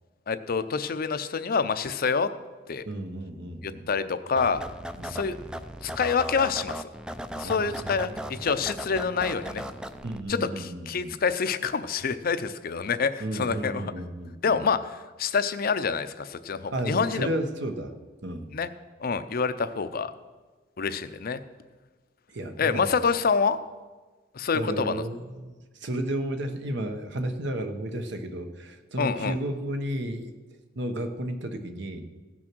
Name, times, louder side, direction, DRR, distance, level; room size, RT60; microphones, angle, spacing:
voice 1, 0.3-2.3 2.7-2.8 3.6-4.6 5.0-5.3 5.8-6.9 7.4-9.7 10.3-13.9 14.4-17.3 18.5-18.7 19.0-20.1 20.8-21.4 22.6-23.6 24.3-25.0 29.0-29.4, left 5 dB, 50° left, 11 dB, 0.6 m, -27 dB
voice 2, 2.9-4.0 5.0-5.2 7.4-8.2 10.0-11.1 13.2-14.6 16.7-17.9 18.2-18.5 22.3-23.0 24.5-30.3 30.7-32.1, right 1 dB, 65° right, 7 dB, 1.1 m, -33 dB
sound 1, 4.4-10.2, equal, 5° right, 0.4 m, -37 dB
16.0 x 6.2 x 6.1 m, 1.3 s
head